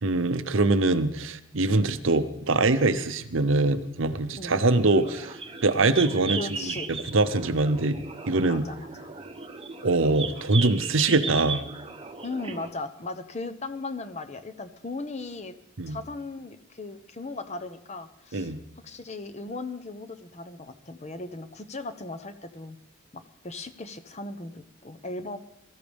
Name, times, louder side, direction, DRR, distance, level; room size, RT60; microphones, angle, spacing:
voice 1, 0.0-5.3 5.6-8.6 9.8-11.7 15.8-16.0 18.3-18.6, right 2 dB, 60° right, 12 dB, 0.8 m, -23 dB
sound 1, 4.7-12.7, right 5 dB, 25° right, 1.0 m, -36 dB
voice 2, 6.3-6.9 8.4-9.1 12.2-15.6 15.9-18.5 18.8-22.8 23.1-25.4, left 3 dB, 30° left, 9 dB, 0.8 m, -37 dB
22.0 x 14.0 x 3.5 m, 0.81 s
head